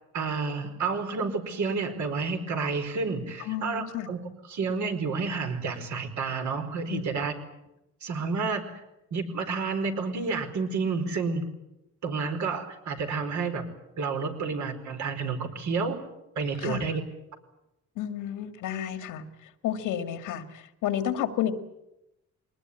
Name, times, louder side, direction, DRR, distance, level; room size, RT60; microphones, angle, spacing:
voice 1, 0.1-4.2 4.5-7.3 8.0-8.8 9.1-11.4 12.0-13.7 14.0-16.0 16.3-17.0, right 4 dB, 70° right, 5 dB, 4.7 m, -30 dB
voice 2, 3.4-4.1 6.9-7.2 16.6-17.0 18.0-19.2 19.6-21.5, left 10 dB, 90° left, 9 dB, 2.1 m, -31 dB
22.5 x 19.5 x 9.8 m, 0.90 s
cardioid pair, 90°, 30 cm